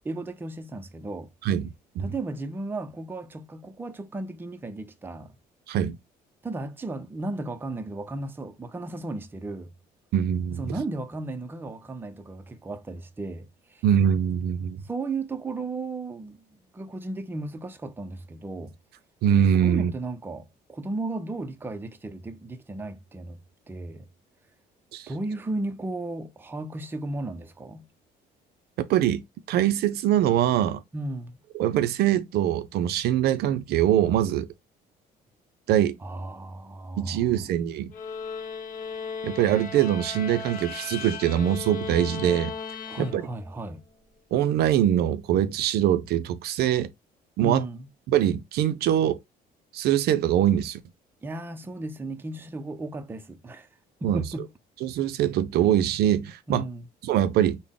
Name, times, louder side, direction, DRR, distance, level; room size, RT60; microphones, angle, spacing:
voice 1, 0.0-1.3 2.0-5.4 6.4-9.7 10.6-13.8 14.8-18.7 19.6-23.4 23.7-24.1 25.1-27.9 30.9-31.4 36.0-37.5 42.9-43.8 47.4-47.9 51.2-53.7 54.0-54.5 56.5-56.9, right 2 dB, 10° right, 0.4 m, -35 dB
voice 2, 1.4-2.0 5.7-6.0 10.1-10.7 13.8-14.8 19.2-19.9 24.9-25.1 28.9-30.8 31.6-34.5 35.7-36.0 37.0-37.9 39.2-42.5 43.0-43.2 44.3-46.9 47.4-47.6 48.1-49.2 49.7-50.8 54.0-54.2 54.8-56.6 57.0-57.6, right 10 dB, 70° right, 0.5 m, -23 dB
sound 1, 37.9-43.6, left 5 dB, 55° left, 0.6 m, -36 dB
3.6 x 2.1 x 3.5 m
cardioid pair, 110°, 17 cm